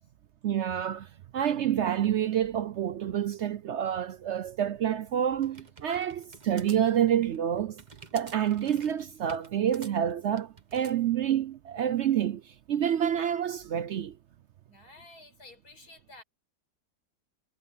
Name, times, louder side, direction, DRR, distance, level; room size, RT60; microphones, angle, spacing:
voice 1, 0.4-1.1 1.3-7.8 8.1-14.1, right 10 dB, 65° right, 0.7 m, -28 dB
sound 1, 4.8-11.0, right 4 dB, 30° right, 1.4 m, -50 dB
voice 2, 14.7-16.2, left 2 dB, 80° left, 6.4 m, -52 dB
omnidirectional pair, 1.6 m